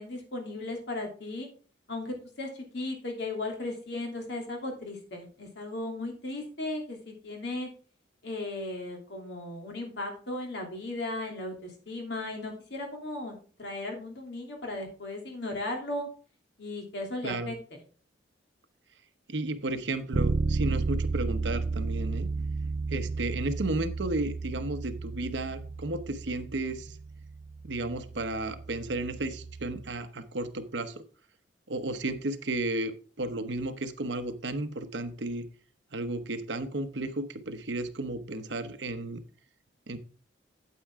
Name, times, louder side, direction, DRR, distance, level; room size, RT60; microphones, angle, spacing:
voice 1, 0.0-1.5 1.9-2.5 2.7-7.7 8.2-16.1 16.6-17.8 22.4-22.5, left 2 dB, 65° left, 1 dB, 2.9 m, -36 dB
voice 2, 19.3-22.3 22.9-27.0 27.6-31.0 31.7-35.5 35.9-39.2 39.9-40.0, right 2 dB, 70° right, 10 dB, 1.0 m, -33 dB
Bass guitar, 20.1-29.9, right 3 dB, 40° right, 0.4 m, -33 dB
8.9 x 8.6 x 3.6 m, 0.39 s
head